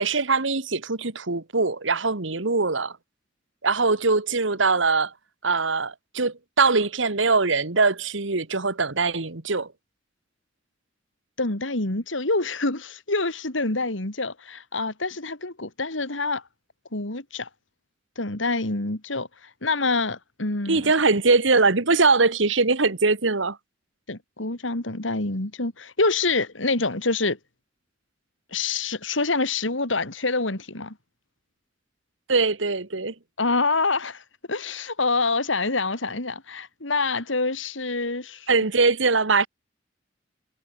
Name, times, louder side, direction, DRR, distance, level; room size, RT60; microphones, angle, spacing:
voice 1, 0.0-2.9 3.6-5.1 5.4-9.7 20.7-23.6 32.3-33.1 38.5-39.5, right 4 dB, 75° right, 1.8 m, -22 dB
voice 2, 11.4-16.4 16.9-17.5 18.2-20.9 24.1-27.4 28.5-30.9 33.4-34.2 34.5-38.5, left 3 dB, 80° left, 3.3 m, -26 dB
head